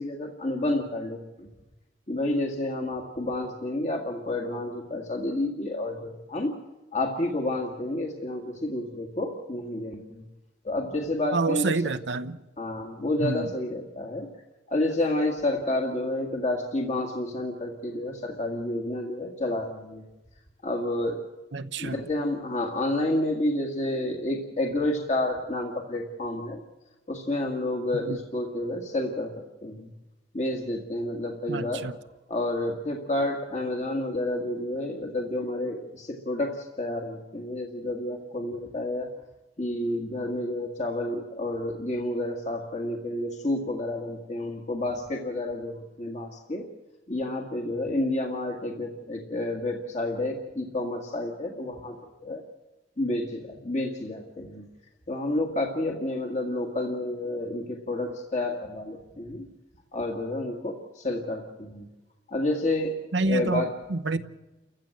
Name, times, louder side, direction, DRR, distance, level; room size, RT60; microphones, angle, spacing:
voice 1, 0.0-1.5 2.1-6.5 6.9-10.2 10.6-11.8 12.6-14.3 14.7-20.0 20.6-21.2 21.8-26.6 27.1-29.3 29.6-29.9 30.3-31.9 32.3-39.1 39.6-46.6 47.1-52.4 53.0-54.6 55.1-59.4 59.9-61.9 62.3-63.7, left 1 dB, 40° left, 1 dB, 1.9 m, -30 dB
voice 2, 11.3-12.4 13.2-13.5 21.5-22.0 27.9-28.2 31.5-31.9 63.1-63.6 63.9-64.2, right 3 dB, 80° right, 9 dB, 0.8 m, -27 dB
29.5 x 15.0 x 7.7 m, 1.1 s
head